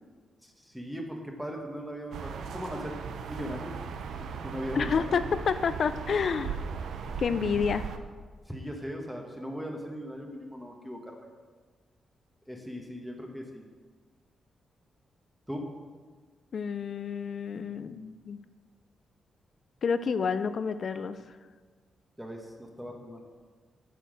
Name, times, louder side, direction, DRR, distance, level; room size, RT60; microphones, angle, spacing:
voice 1, 0.6-3.0 3.2-3.8 4.4-5.0 7.0-7.1 8.5-11.3 12.5-13.7 15.5-15.7 22.2-23.2, equal, 5° right, 1 dB, 1.2 m, -38 dB
sound 1, 2.1-8.0, right 6 dB, 80° right, 0.7 m, -37 dB
voice 2, 4.7-6.6 7.2-7.9 16.5-18.4 19.8-21.2, left 6 dB, 50° left, 12 dB, 0.5 m, -29 dB
9.1 x 6.9 x 6.3 m, 1.5 s
cardioid pair, 120°, 0 cm